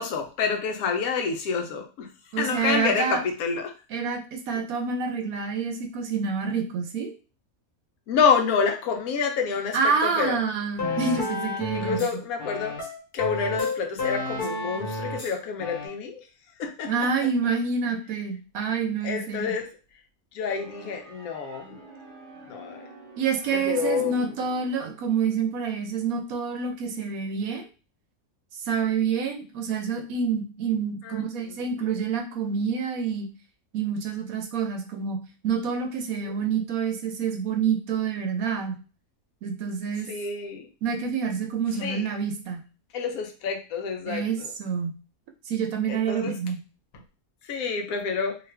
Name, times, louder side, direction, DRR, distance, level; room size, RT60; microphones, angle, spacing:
voice 1, 0.0-2.1 2.4-3.7 8.1-10.4 11.7-12.7 13.1-16.2 16.6-16.9 19.0-19.7 20.3-21.8 22.5-22.8 23.5-24.1 31.0-31.2 31.8-31.9 36.2-36.3 40.1-40.7 41.8-42.0 42.9-44.5 45.9-46.3 47.5-48.4, left 6 dB, 80° left, 4 dB, 1.1 m, -28 dB
voice 2, 2.3-3.2 3.9-7.1 9.7-12.0 16.9-19.5 23.2-27.7 28.7-33.3 33.7-35.2 35.4-38.8 39.4-40.1 40.8-42.6 44.1-45.0 45.5-46.6, right 6 dB, 80° right, 4 dB, 1.1 m, -27 dB
sound 1, 10.8-12.1 12.4-15.3 15.6-15.9, left 3 dB, 45° left, 1.0 m, -30 dB
sound 2, 20.5-25.2, right 2 dB, 45° right, 0.8 m, -47 dB
2.8 x 2.4 x 3.2 m, 0.34 s
omnidirectional pair, 1.5 m